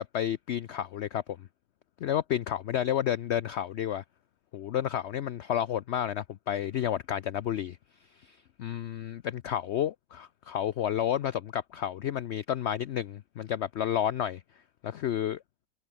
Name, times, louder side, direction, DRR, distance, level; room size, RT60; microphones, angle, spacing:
voice 1, 0.0-1.4 2.0-4.0 4.5-7.8 8.2-14.4 14.8-15.4, left 10 dB, 65° left, 0.7 m, -31 dB
omnidirectional pair, 1.7 m